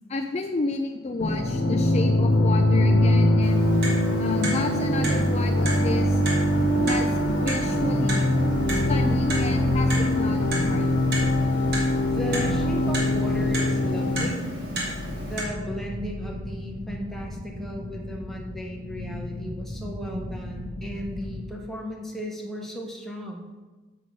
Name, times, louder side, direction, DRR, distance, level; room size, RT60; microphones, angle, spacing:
voice 1, 0.1-3.7 4.2-6.2 6.8-8.3 8.7-10.9, left 3 dB, 35° left, 4 dB, 0.4 m, -31 dB
sound 1, 1.2-14.3, left 1 dB, 85° left, 1.1 m, -22 dB
Clock, 3.4-15.4, equal, 55° right, 1.9 m, -34 dB
sound 2, 6.4-21.4, equal, 70° right, 2.2 m, -36 dB
voice 2, 12.0-14.4 15.2-23.4, equal, ahead, -1 dB, 1.1 m, -35 dB
6.5 x 5.6 x 6.7 m, 1.2 s
head